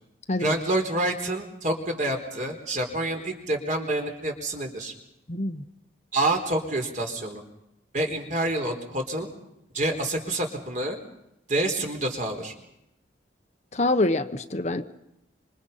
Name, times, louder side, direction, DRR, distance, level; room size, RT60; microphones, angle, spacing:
voice 1, 0.4-4.9 6.1-7.4 7.9-9.3 9.7-11.0 11.5-12.5, right 1 dB, 40° right, 3 dB, 4.3 m, -27 dB
voice 2, 5.3-5.6 13.7-14.8, left 2 dB, 35° left, 8 dB, 1.0 m, -25 dB
27.0 x 26.5 x 5.7 m, 0.82 s
head